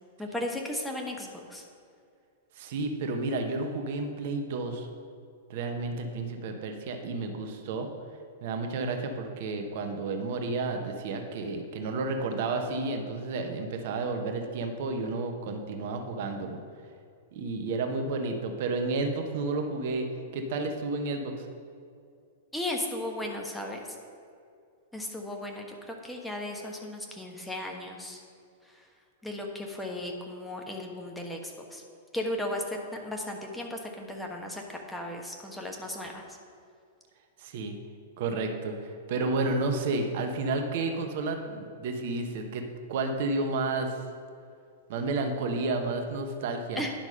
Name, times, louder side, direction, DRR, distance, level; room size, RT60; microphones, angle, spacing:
voice 1, 0.2-1.6 22.5-23.8 24.9-28.2 28.7-28.8 29.2-31.8 32.1-36.2 46.8-46.9, left 1 dB, 5° left, 0 dB, 1.2 m, -36 dB
voice 2, 2.6-4.9 5.5-7.9 8.4-16.6 17.3-20.1 20.3-21.4 37.4-37.8 38.2-42.6 42.9-44.0 44.9-46.8, right 3 dB, 50° right, 5 dB, 1.1 m, -31 dB
10.0 x 6.0 x 5.5 m, 2.4 s
figure-of-eight pair, 100°, 0 cm